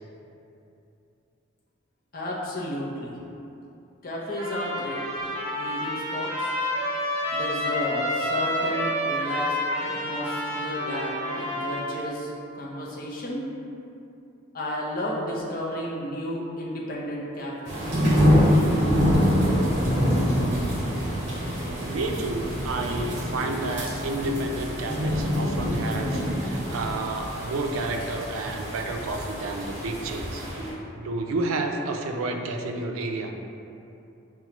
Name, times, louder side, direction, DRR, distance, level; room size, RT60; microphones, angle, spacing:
voice 1, 2.1-3.1 4.0-5.0 5.5-6.5 7.3-13.5 14.5-17.9, equal, 45° left, -4 dB, 0.6 m, -32 dB
Trumpet, 4.4-12.0, left 1 dB, 30° right, 0.8 m, -29 dB
sound 1, 17.7-30.7, equal, 55° right, 0.9 m, -25 dB
voice 2, 21.9-30.6 30.9-33.3, right 2 dB, 90° right, 3 dB, 0.4 m, -30 dB
5.8 x 2.3 x 2.9 m, 2.7 s
head